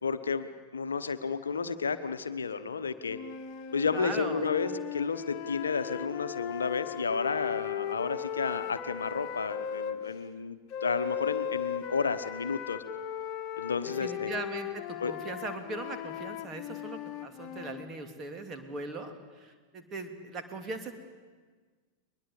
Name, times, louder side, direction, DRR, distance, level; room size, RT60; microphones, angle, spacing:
voice 1, 0.0-3.2 3.7-12.8 13.6-14.3 15.0-15.1, left 5 dB, 70° left, 11 dB, 1.0 m, -32 dB
sound 1, 3.0-10.0 10.7-17.9, left 9 dB, 35° left, 1.6 m, -37 dB
voice 2, 3.9-4.5 13.8-20.9, right 2 dB, 25° right, 6 dB, 2.9 m, -39 dB
22.0 x 21.0 x 8.4 m, 1.5 s
figure-of-eight pair, 90°, 0 cm